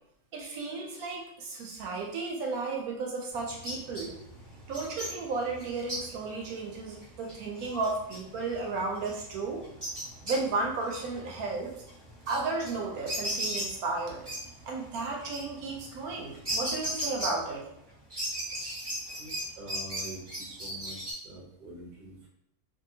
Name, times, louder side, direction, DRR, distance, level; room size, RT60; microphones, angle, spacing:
voice 1, 0.3-4.1 4.7-9.6 10.2-11.7 12.3-14.3 14.7-17.7, right 3 dB, 75° right, 0 dB, 1.0 m, -33 dB
sound 1, 3.3-17.8 18.1-21.1, right 1 dB, 20° right, 0.9 m, -38 dB
voice 2, 19.6-20.2 20.5-21.0 21.2-22.3, right 1 dB, 45° right, -3 dB, 0.6 m, -45 dB
2.7 x 2.5 x 2.7 m, 0.75 s
omnidirectional pair, 1.7 m